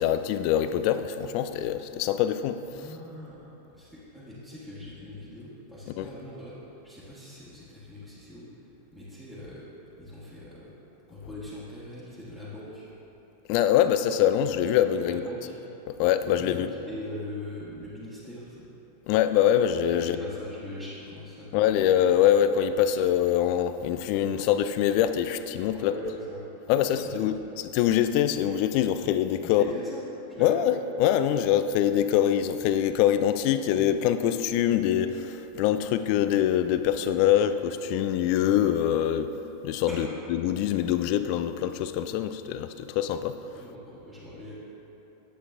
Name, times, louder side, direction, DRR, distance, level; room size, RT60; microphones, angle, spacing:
voice 1, 0.0-2.6 6.0-6.1 13.5-15.2 15.9-16.7 19.1-20.2 21.5-25.9 26.7-27.3 27.7-29.6 30.4-39.3 39.6-40.1 40.4-43.3, left 10 dB, 45° left, 11 dB, 0.3 m, -24 dB
voice 2, 2.7-6.6 6.8-8.4 8.9-9.6 10.0-10.7 11.1-12.9 15.0-15.5 16.2-18.7 19.9-21.9 25.7-26.4 26.7-27.5 29.4-30.0 30.3-30.6 39.9-40.1 43.5-44.5, left 1 dB, ahead, -12 dB, 1.5 m, -41 dB
10.0 x 7.6 x 2.5 m, 3.0 s
figure-of-eight pair, 90°, 0 cm